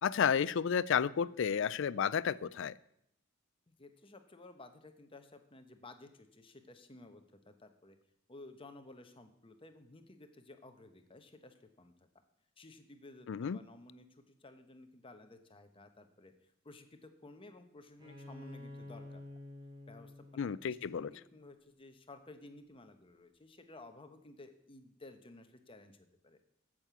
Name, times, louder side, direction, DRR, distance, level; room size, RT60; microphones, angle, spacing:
voice 1, 0.0-2.7 13.3-13.6 20.4-21.1, left 7 dB, 65° left, 19 dB, 0.4 m, -31 dB
voice 2, 3.8-8.0 8.3-11.9 12.6-16.3 16.6-19.2 19.9-26.4, left 2 dB, 25° left, 7 dB, 1.0 m, -55 dB
Bowed string instrument, 18.0-21.6, left 2 dB, 20° right, 2.4 m, -50 dB
8.7 x 7.5 x 8.1 m, 0.75 s
head